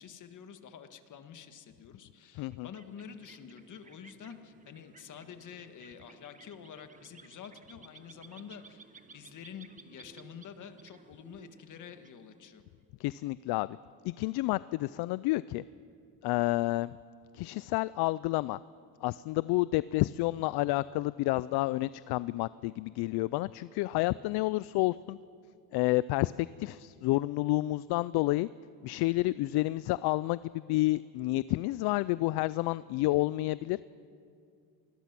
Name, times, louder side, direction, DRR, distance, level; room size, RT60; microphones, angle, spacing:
voice 1, 0.0-8.8 9.1-12.6, left 8 dB, 50° left, 8 dB, 1.7 m, -48 dB
voice 2, 2.4-2.7 13.0-13.8 14.0-15.6 16.2-16.9 17.3-18.6 19.0-25.2 25.7-28.5 28.8-33.8, left 19 dB, 70° left, 18 dB, 0.5 m, -30 dB
sound 1, 2.4-12.8, right 4 dB, 20° right, 1.2 m, -57 dB
27.0 x 21.0 x 6.0 m, 2.4 s
cardioid pair, 110°, 40 cm